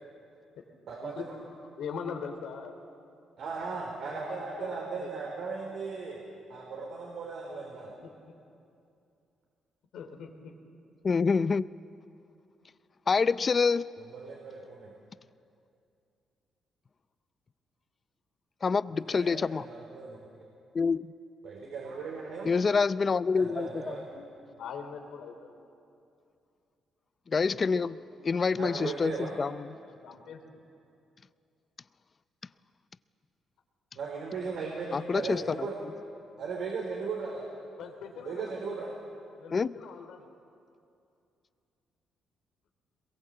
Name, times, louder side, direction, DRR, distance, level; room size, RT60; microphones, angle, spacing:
voice 1, 1.8-2.7 4.1-5.2 8.0-8.3 9.9-10.5 24.5-25.6 28.2-28.3 28.6-28.9 29.8-30.6 35.1-35.6 37.8-38.4 39.4-40.3, left 6 dB, 75° left, 3.1 m, -42 dB
voice 2, 3.4-6.2 6.5-7.9 14.0-14.9 18.9-20.2 21.4-22.7 23.3-24.2 28.5-29.4 33.9-35.7 36.4-37.4 38.2-38.9, right 4 dB, 70° right, 4.2 m, -37 dB
voice 3, 11.0-11.7 13.1-13.8 18.6-19.7 20.7-21.1 22.4-23.9 27.3-28.0 28.2-29.5 34.9-35.7 39.5-39.7, left 5 dB, 35° left, 0.5 m, -27 dB
22.5 x 22.0 x 7.9 m
cardioid pair, 85°, 0 cm